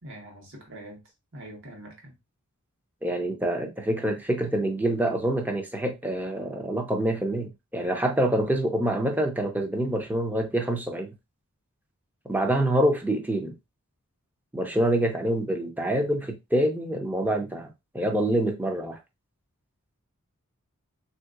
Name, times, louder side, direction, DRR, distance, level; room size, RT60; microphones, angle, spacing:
voice 1, 0.0-1.0 1.3-2.2, right 1 dB, 55° right, 1.3 m, -44 dB
voice 2, 3.0-11.1 12.3-13.5 14.5-19.0, right 1 dB, 10° right, 0.6 m, -26 dB
3.6 x 2.8 x 2.4 m
head